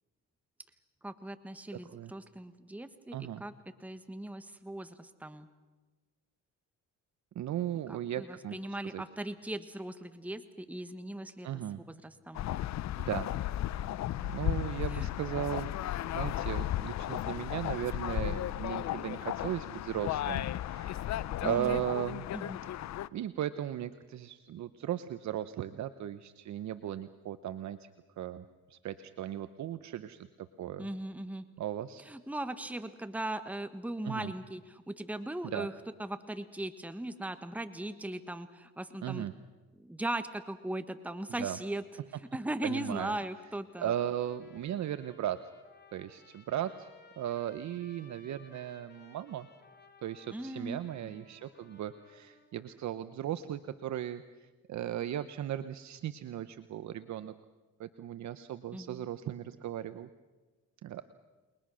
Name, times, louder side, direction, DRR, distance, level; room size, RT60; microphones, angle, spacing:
voice 1, 1.0-3.5 3.8-5.5 7.9-11.6 11.9-12.5 14.9-15.1 21.4-21.8 22.3-22.6 30.8-31.4 32.1-35.7 36.0-39.3 39.8-41.8 42.3-43.9 50.3-51.2 58.7-59.1, right 1 dB, 5° right, 10 dB, 1.3 m, -39 dB
voice 2, 3.1-3.4 7.3-9.0 11.4-11.8 13.0-13.3 13.6-13.9 14.2-15.7 16.1-21.2 21.4-22.3 23.1-27.9 28.2-28.4 28.7-30.3 30.6-30.9 31.6-32.0 34.0-34.3 35.4-35.7 39.0-39.3 41.4-41.6 42.6-43.2 43.8-45.4 45.9-46.9 47.2-49.5 50.0-57.3 57.8-60.1 60.8-61.0, right 11 dB, 65° right, 12 dB, 0.9 m, -37 dB
sound 1, 12.3-23.1, left 13 dB, 65° left, 0.6 m, -35 dB
Trumpet, 43.9-52.5, left 3 dB, 35° left, 4.0 m, -60 dB
29.0 x 21.0 x 6.3 m, 1.2 s
cardioid pair, 90°, 30 cm